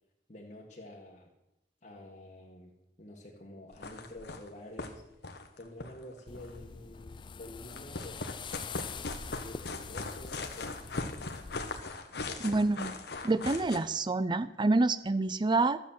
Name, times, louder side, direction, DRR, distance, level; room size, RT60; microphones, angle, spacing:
voice 1, 0.3-1.3 1.8-5.0 5.6-8.6 9.2-11.2 12.2-12.6, left 1 dB, 45° left, -3 dB, 1.7 m, -49 dB
sound 1, 3.7-4.5 4.8-4.9 5.2-6.6 7.7-13.8, left 3 dB, 65° left, 1.3 m, -39 dB
sound 2, 6.3-11.8, left 6 dB, 30° left, 0.4 m, -44 dB
voice 2, 12.4-13.0 13.2-15.8, right 3 dB, 25° right, 16 dB, 0.5 m, -27 dB
13.0 x 8.3 x 7.4 m, 0.91 s
head